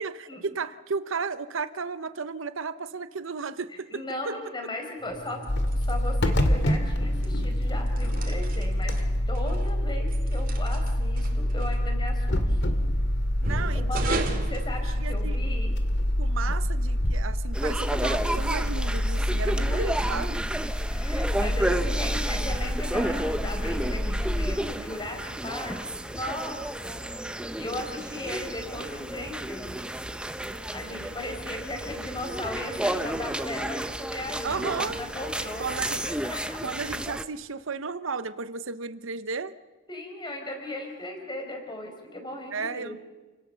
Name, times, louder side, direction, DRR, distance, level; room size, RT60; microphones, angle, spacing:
voice 1, 0.0-4.3 13.4-14.2 14.8-15.6 16.2-20.4 34.4-35.0 35.6-36.0 36.6-39.5 42.5-43.0, right 4 dB, 70° right, 13 dB, 0.8 m, -34 dB
voice 2, 3.9-5.4 5.7-9.0 9.3-12.6 13.7-14.2 14.5-15.8 16.4-16.5 19.2-19.9 20.9-27.0 27.6-29.7 30.7-36.6 39.9-43.0, left 1 dB, 20° left, 4 dB, 4.8 m, -37 dB
sound 1, 5.0-15.5, right 2 dB, 45° right, 2.7 m, -38 dB
sound 2, 5.5-24.6, equal, 55° left, 2.3 m, -27 dB
sound 3, 17.5-37.2, right 1 dB, 5° right, 0.9 m, -32 dB
29.0 x 18.0 x 6.9 m, 1.3 s
head